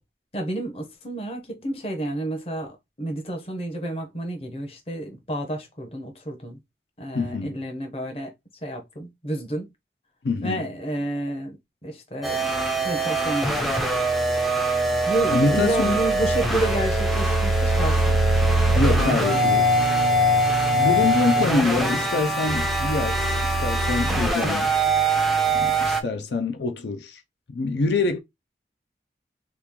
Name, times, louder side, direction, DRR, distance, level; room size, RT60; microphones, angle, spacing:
voice 1, 0.3-6.6 7.0-8.3 8.6-9.7 10.4-11.6 11.8-12.5 12.8-13.7 15.1-18.2, right 1 dB, 35° left, 0.8 m, -30 dB
voice 2, 7.1-7.6 10.2-10.7 15.3-16.0 18.7-19.7 20.7-24.7 25.5-27.2 27.5-28.2, left 3 dB, 80° left, 0.5 m, -25 dB
sound 1, 12.2-26.0, right 1 dB, ahead, 0.4 m, -23 dB
sound 2, 14.9-24.3, right 2 dB, 65° right, 0.5 m, -26 dB
3.0 x 2.4 x 3.6 m
head